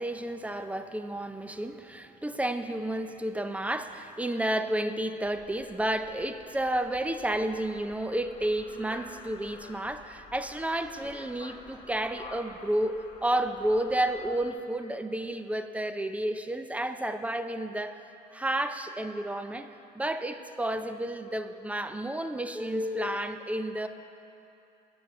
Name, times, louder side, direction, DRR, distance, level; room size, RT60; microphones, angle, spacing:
voice 1, 0.0-18.0 18.3-23.9, right 1 dB, 10° right, 9 dB, 0.4 m, -31 dB
Ort des Treffens, 5.2-14.5, left 3 dB, 30° left, 1.3 m, -50 dB
10.0 x 6.2 x 6.4 m, 2.7 s
cardioid pair, 110°, 17 cm